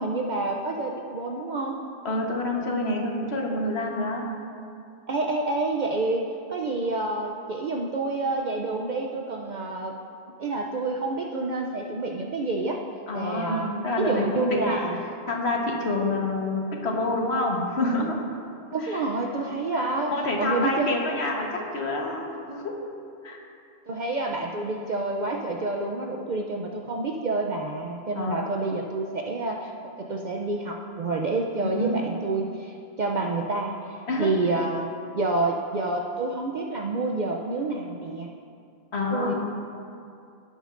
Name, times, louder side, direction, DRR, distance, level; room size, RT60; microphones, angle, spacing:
voice 1, 0.0-1.8 5.1-9.9 10.4-12.8 13.1-13.7 14.0-15.0 18.7-21.0 23.9-29.7 30.0-34.9 35.2-38.3 39.1-39.3, right 2 dB, 50° right, 0 dB, 0.7 m, -28 dB
voice 2, 2.0-4.3 13.1-14.9 15.3-18.2 18.8-19.0 19.5-22.7 23.2-23.4 28.1-28.4 31.6-32.0 34.1-34.3 38.9-39.3, left 2 dB, 75° left, -1 dB, 1.5 m, -28 dB
17.0 x 8.6 x 2.5 m, 2.5 s
omnidirectional pair, 1.1 m